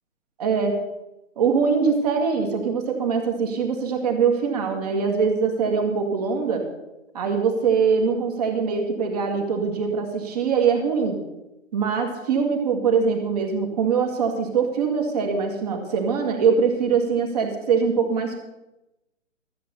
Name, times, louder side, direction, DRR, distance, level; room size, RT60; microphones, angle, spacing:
voice 1, 0.4-0.8 1.4-6.6 7.1-11.2 11.7-18.4, right 5 dB, 30° right, 3 dB, 1.9 m, -22 dB
13.5 x 7.9 x 6.8 m, 0.97 s
figure-of-eight pair, 140°, 39 cm